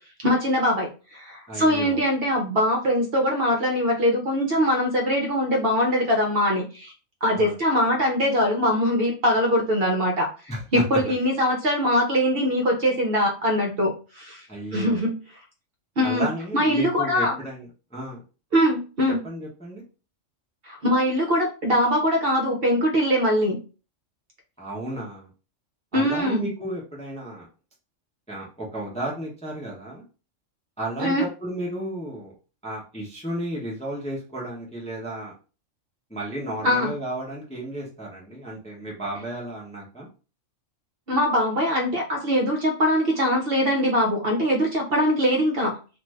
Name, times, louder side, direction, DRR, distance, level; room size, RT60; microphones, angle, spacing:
voice 1, 0.2-6.9 7.2-10.3 10.7-14.4 14.7-15.1 16.0-16.3 16.5-17.3 18.5-19.2 20.7-23.6 25.9-26.4 31.0-31.2 36.6-36.9 41.1-45.7, equal, 55° right, 1 dB, 0.8 m, -22 dB
voice 2, 1.5-2.0 7.3-7.6 10.5-10.8 14.5-15.0 16.0-18.2 19.2-19.8 24.6-25.3 25.9-27.5 28.3-30.0 30.8-32.3 32.6-35.3 36.1-40.1, right 1 dB, 5° left, -3 dB, 0.6 m, -33 dB
2.5 x 2.4 x 3.2 m, 0.34 s
omnidirectional pair, 1.3 m